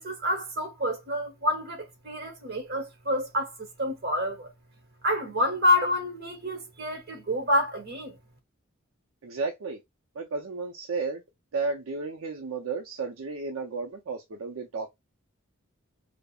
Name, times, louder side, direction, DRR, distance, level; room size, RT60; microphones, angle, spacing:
voice 1, 0.0-4.5 5.0-8.2, left 1 dB, 50° right, 1.2 m, -28 dB
voice 2, 9.2-9.8 10.1-11.2 11.5-14.9, right 4 dB, 75° right, 0.5 m, -33 dB
5.1 x 2.0 x 2.3 m
head